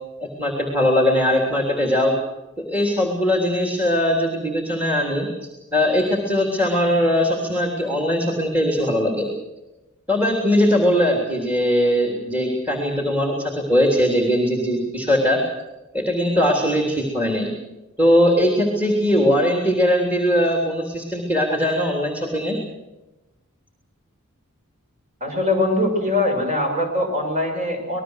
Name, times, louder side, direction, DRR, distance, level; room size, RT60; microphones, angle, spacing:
voice 1, 0.4-2.1 2.6-5.3 5.7-9.3 10.1-15.4 15.9-17.5 18.0-22.6, equal, 5° right, 1 dB, 3.4 m, -20 dB
voice 2, 25.2-28.0, left 1 dB, 35° right, 3 dB, 6.6 m, -22 dB
26.0 x 20.5 x 6.5 m, 1.0 s
head